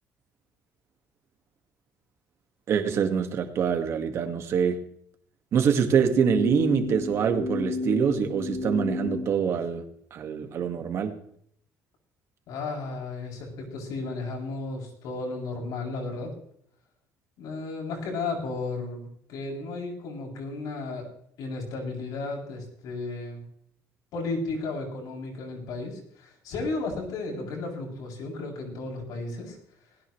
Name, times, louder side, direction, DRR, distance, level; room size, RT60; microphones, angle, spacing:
voice 1, 2.7-4.8 5.5-9.8 10.1-11.2, right 7 dB, 45° right, 5 dB, 2.1 m, -25 dB
sound 1, 6.0-9.3, left 2 dB, 40° left, 3.4 m, -31 dB
voice 2, 12.5-16.3 17.4-19.0 19.3-21.1 21.4-23.4 24.1-29.6, left 3 dB, 70° left, -1 dB, 7.8 m, -34 dB
20.5 x 17.5 x 3.4 m, 0.67 s
cardioid pair, 170°, 7 cm